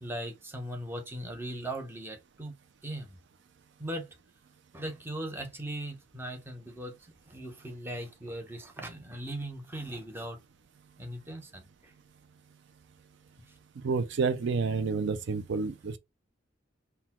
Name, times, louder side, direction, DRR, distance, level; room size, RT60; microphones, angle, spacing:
voice 1, 0.0-2.5 2.8-3.2 3.8-4.1 4.7-10.4 11.0-11.9, right 1 dB, 10° right, 0.7 m, -39 dB
voice 2, 13.8-16.0, right 4 dB, 60° right, 0.4 m, -29 dB
3.9 x 2.2 x 4.2 m
head